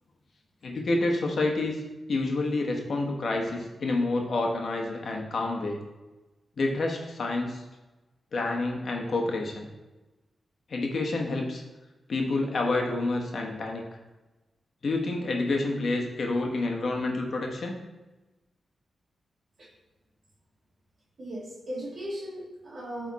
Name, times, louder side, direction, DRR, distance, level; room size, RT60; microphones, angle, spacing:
voice 1, 0.6-1.8 2.1-5.8 6.6-7.6 8.3-9.7 10.7-11.6 12.1-13.8 14.8-17.8, left 2 dB, 65° left, 1 dB, 1.2 m, -28 dB
voice 2, 21.2-23.1, equal, 55° right, -3 dB, 1.6 m, -37 dB
8.2 x 3.7 x 4.1 m, 1.1 s
cardioid pair, 60°, 0 cm